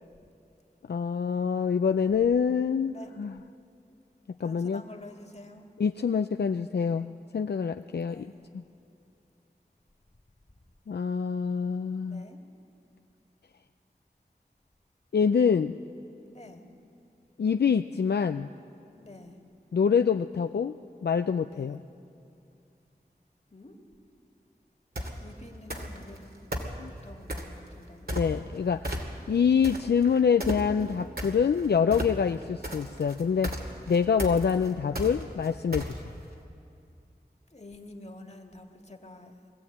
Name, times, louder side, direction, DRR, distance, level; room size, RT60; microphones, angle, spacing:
voice 1, 0.9-3.4 4.4-4.8 5.8-8.6 10.9-12.2 15.1-15.8 17.4-18.5 19.7-20.8 21.0-21.8 26.8-26.9 28.1-33.5 33.9-36.0, left 6 dB, 75° left, 8 dB, 0.4 m, -26 dB
voice 2, 2.8-3.1 4.4-5.7 8.0-8.4 12.1-12.4 16.3-16.6 19.0-19.4 21.5-21.8 23.5-23.8 25.2-26.5 27.0-28.3 37.5-39.3, left 2 dB, 40° left, 3 dB, 2.0 m, -48 dB
sound 1, 25.0-25.2 25.7-26.2 26.5-27.6 28.1-28.6 28.8-29.3 29.6-36.2, equal, 65° right, 2.3 m, -34 dB
21.0 x 14.5 x 8.6 m, 2.6 s
wide cardioid pair, 45°, 17 cm